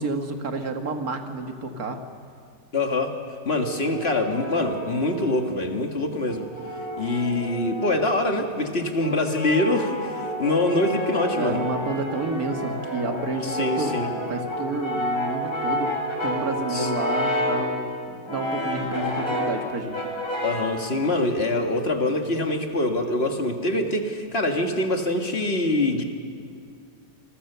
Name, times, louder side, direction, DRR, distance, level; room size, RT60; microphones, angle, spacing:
voice 1, 0.0-2.0 11.3-15.9 16.2-19.9, right 2 dB, 60° right, 5 dB, 2.1 m, -30 dB
voice 2, 2.7-3.2 3.5-6.5 7.0-11.6 13.4-14.1 16.7-16.9 20.4-26.0, left 2 dB, 35° left, 4 dB, 1.9 m, -24 dB
Brass instrument, 3.6-5.5 6.3-8.3 9.0-17.7 18.3-19.6 19.9-20.8, equal, 85° left, 6.0 m, -30 dB
27.5 x 21.0 x 6.9 m, 2.2 s
omnidirectional pair, 1.8 m